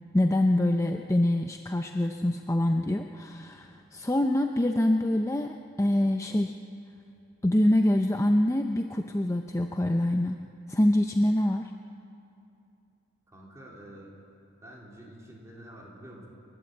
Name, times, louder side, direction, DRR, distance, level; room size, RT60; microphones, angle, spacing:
voice 1, 0.1-6.5 7.4-10.4 10.7-11.6, left 1 dB, 15° left, 4 dB, 0.5 m, -25 dB
voice 2, 13.3-14.1 14.6-16.3, right 1 dB, 15° right, -3 dB, 3.5 m, -47 dB
28.5 x 11.5 x 8.0 m, 2.7 s
head